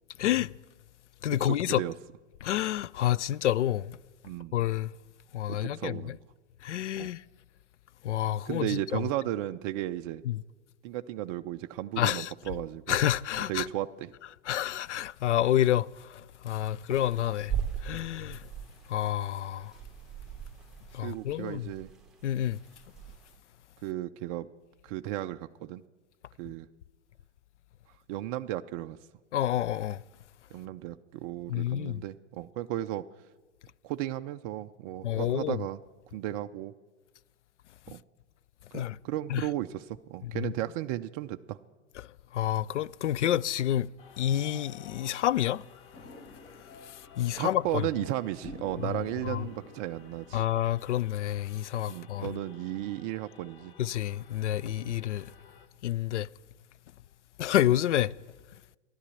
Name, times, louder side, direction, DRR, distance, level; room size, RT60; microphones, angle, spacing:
voice 1, 0.2-0.5 1.2-1.8 2.4-4.0 4.5-4.9 5.3-6.2 6.6-7.2 8.0-9.0 10.3-10.4 12.0-12.3 12.9-13.7 14.5-17.5 17.8-18.5 18.9-19.7 20.9-21.7 22.2-22.6 29.3-30.0 31.5-32.0 35.0-35.6 38.7-39.0 39.3-39.5 40.2-40.5 42.3-43.9 44.2-45.6 47.2-47.8 49.2-49.4 50.3-52.3 53.8-55.3 55.8-56.3 57.4-58.1, left 12 dB, 75° left, 0.5 m, -28 dB
voice 2, 1.4-1.9 4.2-4.6 5.5-6.2 7.0-7.1 8.5-10.2 10.8-13.0 13.5-14.1 21.0-21.9 23.8-24.5 24.8-25.8 26.4-26.7 28.1-29.0 30.5-33.0 33.8-35.8 36.1-36.7 37.9-38.0 38.7-41.6 47.4-50.4 51.9-53.7 54.8-55.0, right 14 dB, 30° right, 0.4 m, -35 dB
sound 1, 16.9-23.4, right 8 dB, ahead, 1.8 m, -40 dB
sound 2, 44.0-55.7, left 7 dB, 55° left, 1.3 m, -54 dB
sound 3, 45.9-47.4 48.4-50.9, left 2 dB, 30° left, 2.0 m, -48 dB
14.0 x 11.0 x 8.2 m
hypercardioid pair, 110°, 36 cm